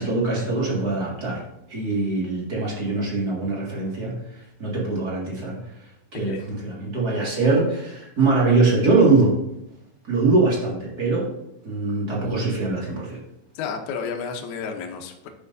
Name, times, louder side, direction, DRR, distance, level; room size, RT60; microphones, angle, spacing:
voice 1, 0.0-1.4 1.7-5.6 6.1-9.3 10.0-11.3 11.6-13.2, right 3 dB, 35° right, -5 dB, 2.0 m, -22 dB
voice 2, 13.5-15.3, left 6 dB, 70° left, 3 dB, 2.0 m, -31 dB
10.5 x 6.8 x 2.6 m, 0.81 s
omnidirectional pair, 3.9 m